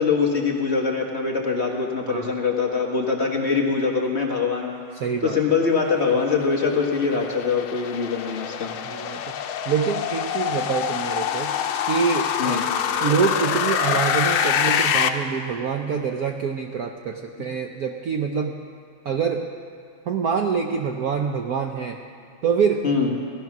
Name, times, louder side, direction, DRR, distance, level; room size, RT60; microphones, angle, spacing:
voice 1, 0.0-4.8 5.2-8.7 12.4-12.6 22.8-23.1, left 5 dB, 35° left, -1 dB, 1.7 m, -23 dB
voice 2, 4.9-5.4 8.8-9.4 9.7-11.5 11.9-12.6 13.0-18.6 19.0-19.4 20.1-22.0 22.4-22.8, right 6 dB, 65° right, 4 dB, 1.0 m, -25 dB
sound 1, 5.5-15.1, left 9 dB, 90° left, 1.6 m, -25 dB
17.5 x 13.0 x 6.0 m, 2.2 s
omnidirectional pair, 2.2 m